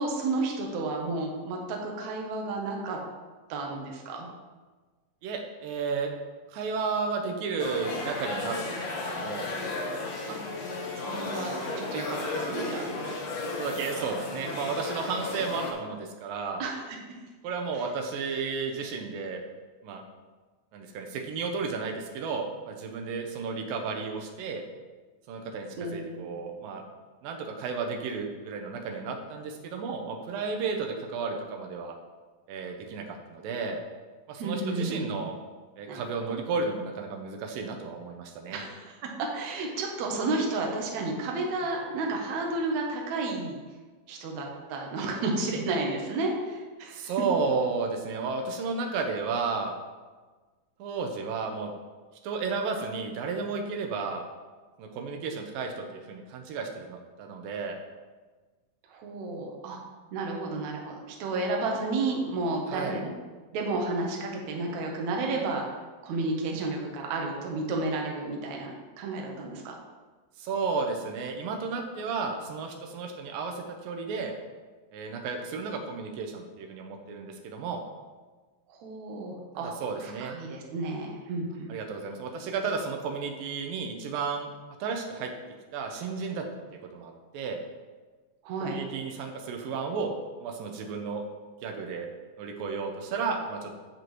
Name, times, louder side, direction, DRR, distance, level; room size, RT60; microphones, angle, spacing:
voice 1, 0.0-3.0 3.5-4.3 10.3-10.4 11.0-13.2 16.6-16.8 25.8-26.4 34.4-35.1 35.9-36.0 38.5-43.6 44.1-47.1 58.9-59.8 60.1-63.0 63.5-65.6 66.0-69.7 78.7-79.7 80.0-81.7 88.4-88.8, right 3 dB, 65° right, 0 dB, 2.1 m, -32 dB
voice 2, 5.2-6.1 6.5-9.5 13.4-16.6 17.4-19.4 19.8-20.0 20.7-24.7 25.3-26.8 27.2-31.9 32.5-33.0 33.3-33.8 34.3-35.4 35.8-38.6 46.9-49.7 50.8-51.7 52.2-54.2 54.8-57.8 62.7-63.0 70.4-74.3 74.9-77.8 79.8-80.3 81.7-84.5 84.8-85.3 85.7-86.4 86.9-87.6 88.6-90.1 90.4-91.2 91.6-92.1 92.4-93.8, right 4 dB, 85° right, 3 dB, 2.6 m, -33 dB
sound 1, 7.6-15.7, left 3 dB, 65° left, 1.9 m, -34 dB
8.3 x 7.7 x 3.1 m, 1.3 s
omnidirectional pair, 4.0 m